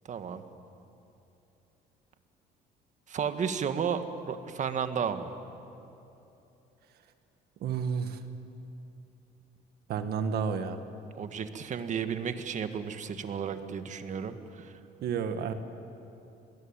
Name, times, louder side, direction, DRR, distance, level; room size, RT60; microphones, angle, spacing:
voice 1, 0.1-0.4 3.1-5.3 11.2-14.7, right 7 dB, 45° right, 8 dB, 1.7 m, -33 dB
voice 2, 7.6-8.2 9.9-10.8 15.0-15.5, right 6 dB, 70° right, 8 dB, 1.9 m, -30 dB
26.0 x 20.5 x 9.0 m, 2.9 s
cardioid pair, 110°, 17 cm